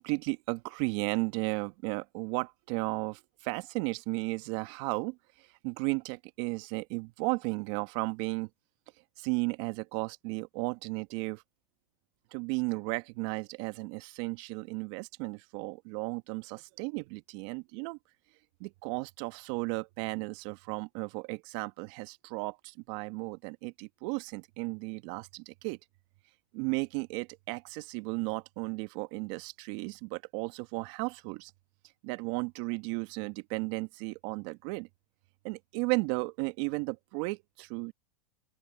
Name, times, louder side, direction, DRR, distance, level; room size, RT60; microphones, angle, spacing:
voice 1, 0.0-5.2 5.6-8.5 9.2-11.4 12.3-18.0 18.6-25.8 26.5-31.5 32.0-34.9 35.4-37.9, right 27 dB, 55° right, 1.5 m, -34 dB
open air
hypercardioid pair, 110°, 18 cm